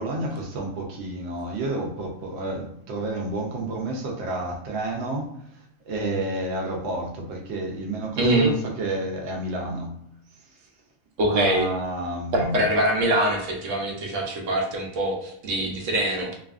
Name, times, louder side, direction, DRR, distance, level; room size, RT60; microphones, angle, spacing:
voice 1, 0.0-5.3 5.9-9.9 11.3-12.6, right 2 dB, 65° right, 0 dB, 0.8 m, -30 dB
voice 2, 8.2-8.5 11.2-11.7 12.3-16.3, right 1 dB, 90° right, 0 dB, 1.0 m, -23 dB
2.7 x 2.4 x 2.3 m, 0.75 s
omnidirectional pair, 1.3 m